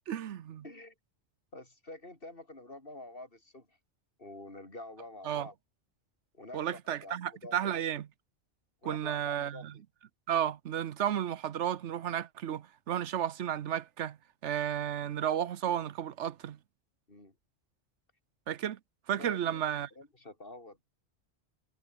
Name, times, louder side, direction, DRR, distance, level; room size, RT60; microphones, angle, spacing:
voice 1, 0.1-0.6 5.2-5.5 6.5-8.1 8.8-9.7 10.3-14.2 14.4-16.6 18.5-18.8 19.1-19.9, right 10 dB, 85° right, 1.1 m, -33 dB
voice 2, 0.6-0.9 1.5-3.8 4.2-5.5 6.3-7.7 8.8-9.8 17.1-17.3 19.2-19.6 19.9-20.8, left 2 dB, 55° left, 4.6 m, -48 dB
omnidirectional pair, 1.2 m